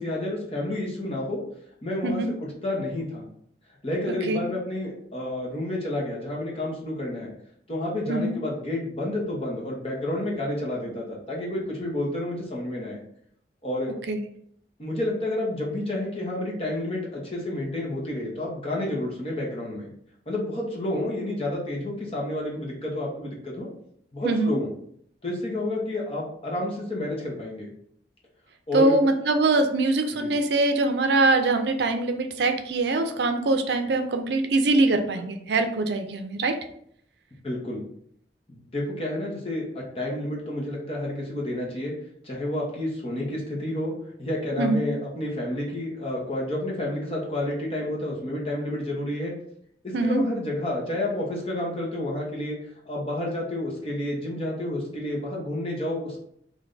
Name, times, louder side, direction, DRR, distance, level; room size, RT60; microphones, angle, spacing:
voice 1, 0.0-1.4 1.8-3.3 3.8-7.3 7.7-13.0 13.6-13.9 14.8-19.9 20.3-23.7 24.1-24.7 25.2-27.7 28.7-29.0 30.2-30.3 37.4-37.9 38.5-41.9 42.2-43.9 44.2-49.3 49.8-52.6 52.9-56.2, left 1 dB, 35° left, -3 dB, 1.0 m, -30 dB
voice 2, 24.2-24.6 28.7-36.5 44.6-44.9 49.9-50.2, right 2 dB, 75° right, 6 dB, 0.5 m, -23 dB
3.3 x 2.5 x 3.9 m, 0.68 s
head